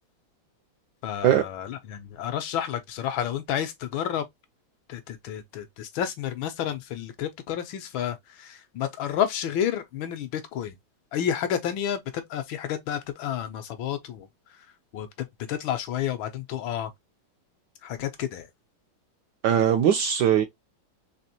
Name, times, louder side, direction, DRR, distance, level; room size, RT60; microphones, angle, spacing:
voice 1, 1.0-4.3 4.9-10.7 11.1-14.3 14.6-14.7 14.9-16.9 17.8-18.5, left 9 dB, 75° left, 1.5 m, -30 dB
voice 2, 19.4-20.4, right 9 dB, 75° right, 1.0 m, -20 dB
4.1 x 3.0 x 2.8 m
omnidirectional pair, 2.3 m